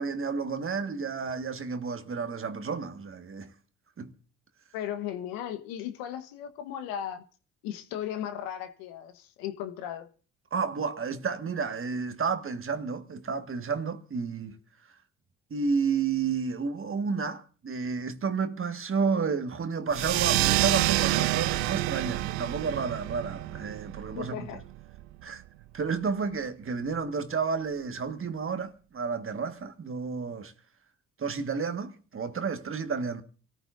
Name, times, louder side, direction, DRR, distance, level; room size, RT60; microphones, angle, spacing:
voice 1, 0.0-3.5 4.0-4.1 10.5-14.6 15.5-24.5 25.2-25.4 25.7-30.5 31.2-33.2, right 5 dB, 35° right, 1.6 m, -31 dB
voice 2, 4.7-7.2 7.6-10.1 24.1-24.6, left 10 dB, 75° left, 1.3 m, -36 dB
sound 1, 19.9-25.0, right 18 dB, 75° right, 0.6 m, -28 dB
26.5 x 14.0 x 2.6 m
hypercardioid pair, 55°, 35 cm